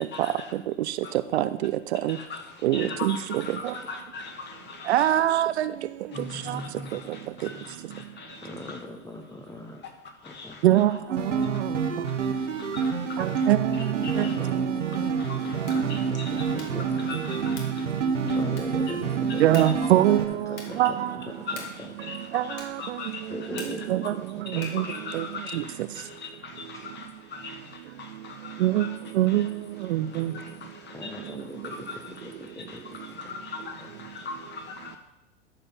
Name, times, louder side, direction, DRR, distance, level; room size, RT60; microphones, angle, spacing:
voice 1, 0.1-0.5 1.0-1.2 2.1-5.1 6.1-8.8 9.8-10.6 11.4-14.5 14.8-18.5 19.3-19.9 21.5-23.9 24.5-35.0, left 4 dB, 30° left, 4 dB, 1.9 m, -41 dB
voice 2, 1.3-1.7 2.0-2.2 2.6-3.7 4.9-5.7 6.5-6.6 10.6-11.7 13.2-14.3 15.0-15.1 19.4-21.1 22.3-22.5 23.9-24.2 24.5-24.9 25.1-25.2 25.5-25.6 28.6-28.9 29.2-29.5 29.9-30.3, right 13 dB, 60° right, 13 dB, 0.6 m, -23 dB
voice 3, 8.4-9.8 10.2-10.6 14.0-14.6 16.1-16.2 16.5-17.8 18.2-19.8 20.1-21.0 21.3-21.9 23.3-24.7 27.4-27.5 30.9-31.7 32.1-33.0 33.8-33.9, left 2 dB, 10° left, 2 dB, 0.8 m, -40 dB
sound 1, 11.1-20.3, right 5 dB, 80° right, 1.4 m, -28 dB
sound 2, 15.6-15.9 16.5-16.9 17.5-17.9 18.5-18.9 19.5-19.9 20.5-20.9 21.5-21.9 22.5-22.9 23.5-24.0 24.5-24.9, left 3 dB, 45° left, 2.7 m, -45 dB
13.5 x 5.2 x 5.8 m, 0.93 s
figure-of-eight pair, 90°, 37 cm